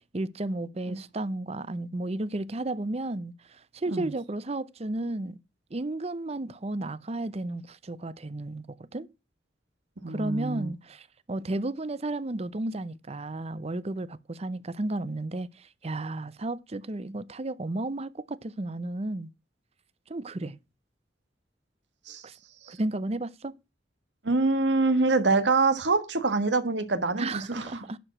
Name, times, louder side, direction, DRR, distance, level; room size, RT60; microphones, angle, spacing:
voice 1, 0.1-5.4 5.7-8.7 8.9-9.1 10.1-19.3 20.1-20.6 22.2-22.4 22.7-23.5 27.2-28.0, right 2 dB, 35° right, 0.7 m, -33 dB
voice 2, 10.0-10.7 22.1-22.2 22.6-22.8 24.2-27.8, right 3 dB, 75° right, 1.7 m, -25 dB
11.5 x 4.9 x 7.3 m
head